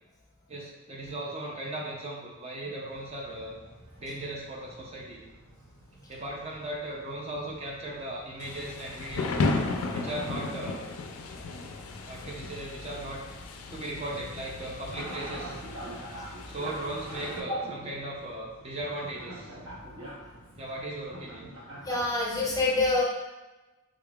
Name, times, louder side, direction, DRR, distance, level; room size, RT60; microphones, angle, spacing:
voice 1, 0.5-3.6 4.0-5.2 6.1-9.4 9.9-10.8 12.0-13.2 13.7-15.6 16.4-19.5 20.6-21.5, right 1 dB, 30° right, -2 dB, 0.5 m, -37 dB
sound 1, 2.9-22.0, right 1 dB, 65° right, 0.8 m, -47 dB
Thunder / Rain, 8.4-17.4, left 3 dB, 85° left, 0.4 m, -35 dB
voice 2, 21.8-23.0, left 2 dB, 15° left, -3 dB, 0.5 m, -26 dB
3.7 x 3.5 x 2.3 m, 1.1 s
head